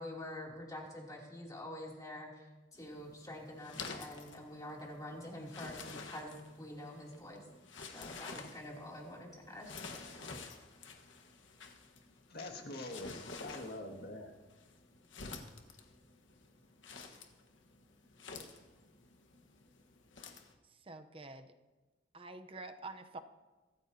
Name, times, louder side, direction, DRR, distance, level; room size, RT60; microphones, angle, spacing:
voice 1, 0.0-2.4 2.7-7.4 7.9-10.2, left 1 dB, 20° left, -2 dB, 2.9 m, -47 dB
sound 1, 2.7-20.5, left 4 dB, 80° left, 1.4 m, -50 dB
voice 2, 12.3-14.3, left 2 dB, 55° left, 2 dB, 2.0 m, -45 dB
voice 3, 20.6-21.5 22.1-23.2, right 3 dB, 30° right, 8 dB, 0.7 m, -48 dB
23.5 x 14.0 x 2.8 m, 1.2 s
head